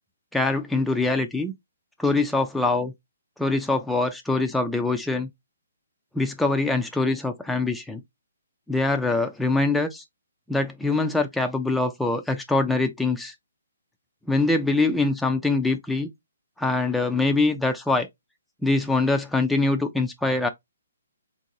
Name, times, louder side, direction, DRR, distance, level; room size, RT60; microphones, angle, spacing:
voice 1, 0.3-1.5 2.0-2.9 3.4-5.3 6.1-8.0 8.7-10.0 10.5-13.3 14.3-16.1 16.6-18.1 18.6-20.5, left 3 dB, 5° left, 0.3 m, -23 dB
3.8 x 2.6 x 2.6 m
hypercardioid pair, 150°, 0 cm